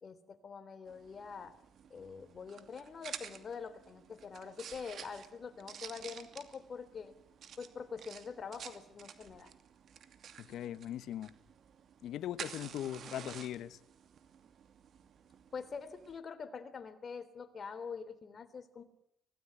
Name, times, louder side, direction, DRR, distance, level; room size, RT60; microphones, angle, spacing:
voice 1, 0.0-1.5 1.9-7.2 7.6-9.5 15.5-18.8, left 5 dB, 45° left, 3.4 m, -45 dB
sound 1, 0.9-16.2, right 8 dB, 65° right, 2.6 m, -51 dB
voice 2, 10.4-11.3 12.0-13.8, left 11 dB, 80° left, 1.2 m, -40 dB
25.5 x 18.0 x 9.8 m
cardioid pair, 90°, 0 cm